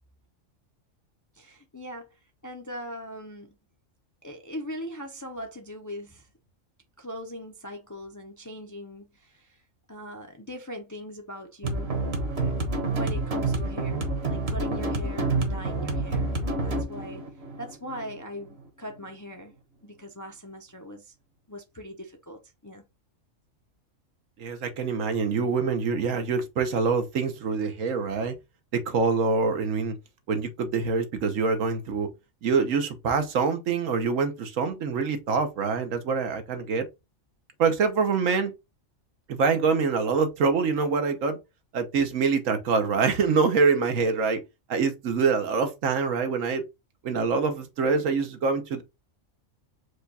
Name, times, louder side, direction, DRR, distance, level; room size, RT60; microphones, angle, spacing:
voice 1, 1.4-2.1 2.4-3.6 4.2-6.3 7.0-9.6 9.9-12.0 12.4-17.2 17.6-19.5 19.8-21.1 21.5-22.8, equal, 25° left, 0.4 m, -40 dB
sound 1, 11.6-18.6, right 2 dB, 55° right, 1.4 m, -28 dB
voice 2, 24.4-28.3 28.7-30.0 30.3-32.1 32.4-36.8 37.6-38.5 39.3-41.4 41.7-44.4 44.7-46.6 47.0-48.8, right 5 dB, 80° right, 1.3 m, -25 dB
4.9 x 2.3 x 4.0 m
omnidirectional pair, 1.3 m